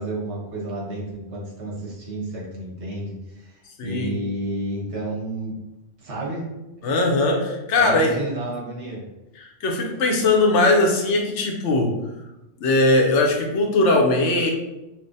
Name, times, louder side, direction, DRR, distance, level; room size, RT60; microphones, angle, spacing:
voice 1, 0.0-5.5 6.0-6.5 7.7-9.0, right 1 dB, 70° right, -4 dB, 1.4 m, -31 dB
voice 2, 3.8-4.1 6.8-8.2 9.4-11.9 12.6-14.5, left 2 dB, 80° left, 1 dB, 1.0 m, -20 dB
5.8 x 2.1 x 2.6 m, 0.99 s
omnidirectional pair, 1.2 m